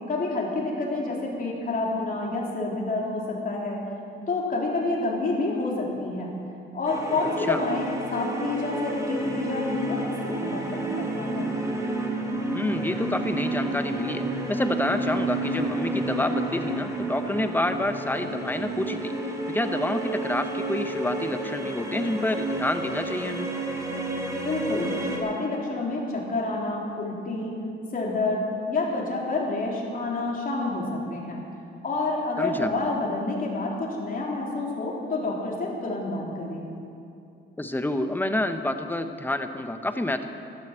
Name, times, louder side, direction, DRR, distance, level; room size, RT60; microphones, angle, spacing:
voice 1, 0.1-3.8 4.3-6.3 6.7-11.5 24.4-27.5 27.9-28.4 28.7-31.4 31.8-36.7, left 2 dB, 45° left, -2 dB, 3.9 m, -28 dB
sound 1, 6.9-25.2, right 2 dB, 15° right, 2.9 m, -30 dB
voice 2, 7.2-7.6 12.5-23.5 32.4-32.7 37.6-40.3, left 1 dB, 10° left, 8 dB, 1.1 m, -28 dB
12.5 x 12.5 x 7.6 m, 2.6 s
cardioid pair, 90°, 20 cm